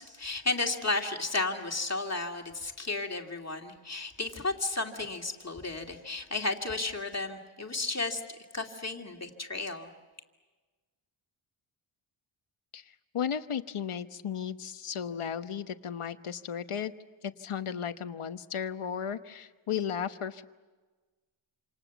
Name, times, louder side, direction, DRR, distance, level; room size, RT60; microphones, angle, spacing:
voice 1, 0.0-8.2 8.5-9.9, left 3 dB, 30° left, 3 dB, 2.4 m, -33 dB
voice 2, 13.1-16.9 17.2-20.4, left 8 dB, 85° left, 10 dB, 1.1 m, -35 dB
27.5 x 27.0 x 7.1 m, 1.3 s
wide cardioid pair, 120°, 49 cm